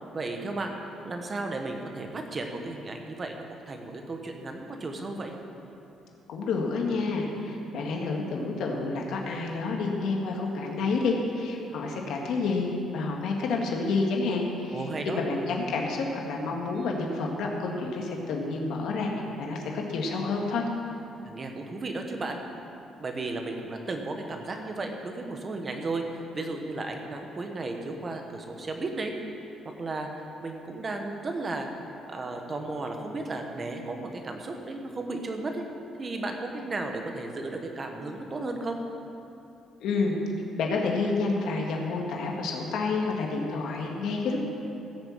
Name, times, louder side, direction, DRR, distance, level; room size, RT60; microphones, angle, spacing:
voice 1, 0.1-0.8 1.0-5.3 14.7-15.2 21.2-22.4 23.0-29.1 29.6-30.1 30.4-31.7 32.1-35.6 36.0-38.8, right 2 dB, 25° right, 3 dB, 1.2 m, -34 dB
voice 2, 6.3-19.1 19.4-20.7 39.8-40.1 40.6-44.4, left 3 dB, 65° left, 0 dB, 1.8 m, -29 dB
16.0 x 6.9 x 7.3 m, 2.8 s
cardioid pair, 170°, 0 cm